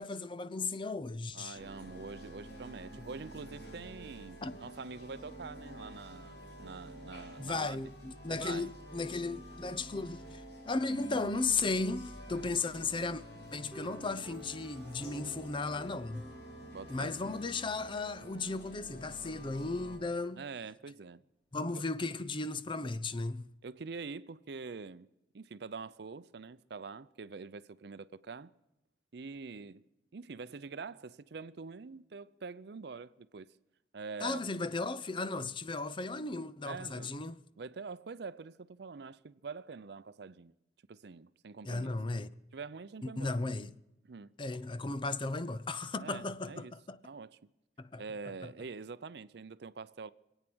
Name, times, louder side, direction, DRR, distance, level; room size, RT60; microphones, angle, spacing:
voice 1, 0.0-1.6 4.4-4.6 7.4-13.2 13.5-16.2 16.9-20.4 21.5-23.5 34.2-37.4 41.6-42.3 43.0-43.8 44.4-47.0 47.8-48.0, left 3 dB, 30° left, 0.5 m, -35 dB
voice 2, 1.3-7.8 8.3-8.7 16.7-17.2 20.4-21.2 21.7-21.8 23.6-25.1 25.3-28.5 29.1-29.8 30.1-33.5 33.9-34.4 36.6-37.1 37.6-40.6 40.9-41.9 42.5-43.4 44.1-44.3 46.0-46.7 47.0-47.4 48.0-50.1, right 4 dB, 65° right, 0.5 m, -45 dB
sound 1, 1.5-20.0, equal, 70° left, 5.5 m, -49 dB
sound 2, 13.7-19.3, equal, 10° right, 0.9 m, -54 dB
25.0 x 9.0 x 6.1 m
head